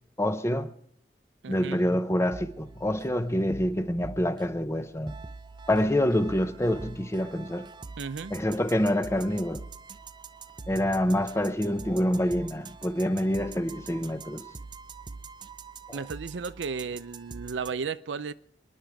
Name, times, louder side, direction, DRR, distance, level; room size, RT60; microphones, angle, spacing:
voice 1, 0.2-0.7 1.5-5.1 5.7-7.7 8.3-9.6 10.7-14.4 15.9-16.0, left 1 dB, 15° left, 0.7 m, -26 dB
voice 2, 1.4-1.8 8.0-8.3 15.9-18.3, right 5 dB, 90° right, 0.5 m, -34 dB
sound 1, 2.3-17.7, right 4 dB, 25° right, 0.5 m, -45 dB
28.0 x 10.5 x 3.5 m
head